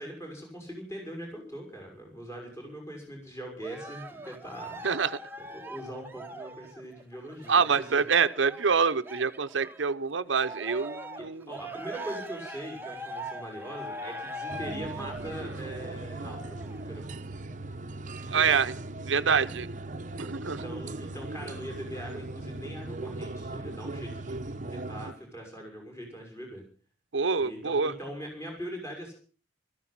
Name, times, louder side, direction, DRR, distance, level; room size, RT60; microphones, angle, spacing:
voice 1, 0.0-4.8 5.4-8.0 11.5-17.1 20.4-26.6 27.4-29.1, equal, 15° left, 0 dB, 6.3 m, -41 dB
Cheering, 3.6-9.9 10.3-16.9 17.5-17.6, right 1 dB, 10° right, 1.3 m, -42 dB
voice 2, 7.5-11.5 18.3-18.7 19.0-19.7 20.2-20.6 27.1-27.9, right 5 dB, 85° right, 10 dB, 0.8 m, -26 dB
sound 1, 14.5-25.1, right 2 dB, 45° right, 0.9 m, -38 dB
16.5 x 14.5 x 5.9 m, 0.40 s
head